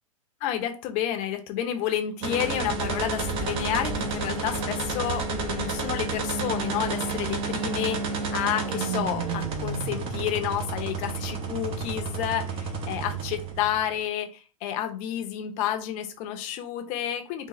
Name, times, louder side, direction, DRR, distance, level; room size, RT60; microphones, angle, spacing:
voice 1, 0.4-17.5, left 10 dB, 40° left, 6 dB, 0.7 m, -30 dB
sound 1, 2.2-13.9, right 4 dB, 30° right, 0.7 m, -30 dB
3.7 x 2.5 x 3.0 m, 0.36 s
figure-of-eight pair, 100°, 18 cm